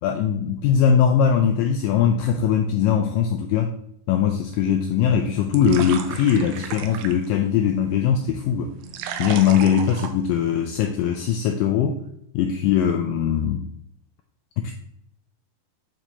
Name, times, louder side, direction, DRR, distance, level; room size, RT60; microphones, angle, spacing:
voice 1, 0.0-3.7 4.1-8.7 9.2-12.0 12.3-13.7 14.6-14.7, left 8 dB, 90° left, 4 dB, 1.9 m, -21 dB
sound 1, 5.0-10.9, right 8 dB, 80° right, 2.4 m, -36 dB
9.2 x 4.6 x 2.9 m, 0.73 s
omnidirectional pair, 4.5 m